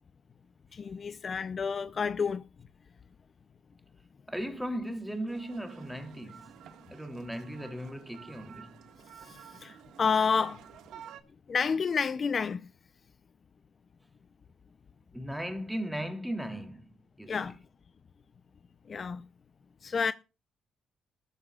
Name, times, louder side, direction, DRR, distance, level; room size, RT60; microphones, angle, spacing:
voice 1, 0.7-2.4 9.2-10.6 11.5-12.7 17.3-17.6 18.9-19.2 19.8-20.1, left 5 dB, 45° left, 0.6 m, -30 dB
voice 2, 4.3-6.5 6.9-8.8 15.1-16.9 17.2-17.3, equal, 5° right, 3.2 m, -37 dB
sound 1, 5.3-11.2, right 9 dB, 85° right, 1.8 m, -50 dB
19.0 x 14.0 x 2.4 m
cardioid pair, 90°, 0 cm